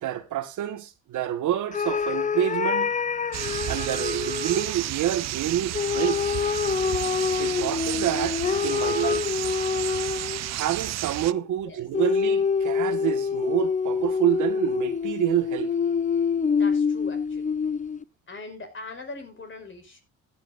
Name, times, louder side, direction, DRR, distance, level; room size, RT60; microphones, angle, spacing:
voice 1, 0.0-2.9 3.7-6.2 7.4-9.3 10.5-15.7, right 12 dB, 80° right, 1.6 m, -28 dB
sound 1, 1.7-4.7 5.7-10.5 11.9-18.0, left 5 dB, 25° left, 0.6 m, -26 dB
sound 2, 3.3-11.3, right 14 dB, 60° right, 0.6 m, -32 dB
voice 2, 11.5-11.8 16.1-16.2 16.5-17.6 18.3-20.0, left 3 dB, 40° left, 5.4 m, -41 dB
16.0 x 9.9 x 2.6 m
cardioid pair, 90°, 30 cm